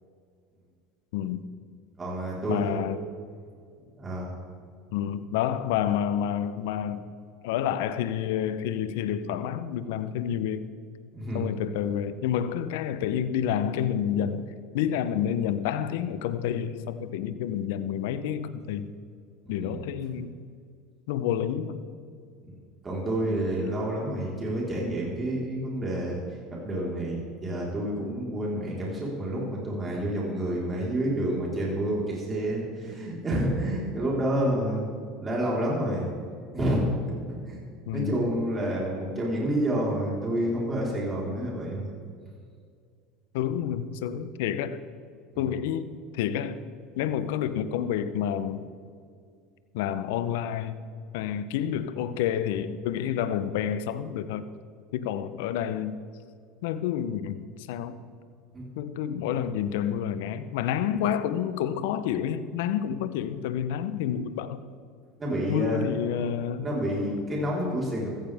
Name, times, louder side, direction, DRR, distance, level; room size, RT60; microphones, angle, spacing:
voice 1, 1.1-1.4 2.5-3.0 4.9-7.1 7.4-10.7 11.3-14.5 14.7-18.9 19.5-20.3 21.1-21.8 37.9-38.1 43.3-44.8 45.4-46.6 47.0-48.7 49.7-50.7 51.1-54.4 54.9-55.9 56.6-58.0 58.8-64.6 65.5-66.7, left 9 dB, 75° left, 13 dB, 0.8 m, -29 dB
voice 2, 2.0-2.8 4.0-4.3 11.1-11.5 19.5-19.9 22.8-26.2 26.5-34.9 35.2-36.1 36.5-36.8 37.3-37.6 37.9-41.9 45.3-45.5 58.5-58.7 65.2-65.9 66.6-68.1, right 1 dB, 25° right, -4 dB, 4.2 m, -29 dB
16.0 x 14.5 x 3.6 m, 2.2 s
hypercardioid pair, 85°, 0 cm